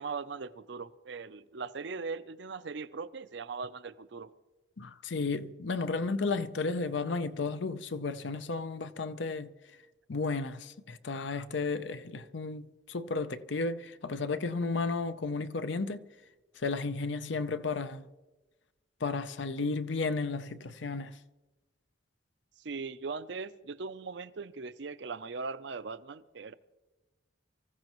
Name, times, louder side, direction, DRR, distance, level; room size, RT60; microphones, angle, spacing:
voice 1, 0.0-4.3 22.6-26.5, right 4 dB, 65° right, 0.6 m, -39 dB
voice 2, 4.8-9.5 10.1-16.0 16.6-18.0 19.0-21.1, left 3 dB, 70° left, 0.7 m, -33 dB
25.0 x 15.0 x 3.1 m
head